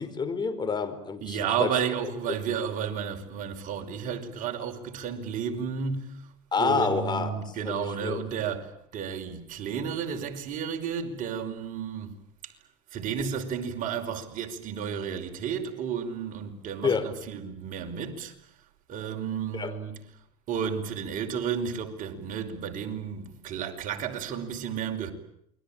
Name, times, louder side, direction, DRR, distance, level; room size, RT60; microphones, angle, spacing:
voice 1, 0.0-1.8 6.5-8.2 16.8-17.1 19.5-19.8, left 5 dB, 25° left, 4.9 m, -29 dB
voice 2, 1.2-6.2 6.6-8.7 8.9-12.1 12.9-18.3 18.9-20.0 20.5-25.1, right 7 dB, 50° right, 5.4 m, -32 dB
28.5 x 22.5 x 9.0 m
supercardioid pair, 95°, 17 cm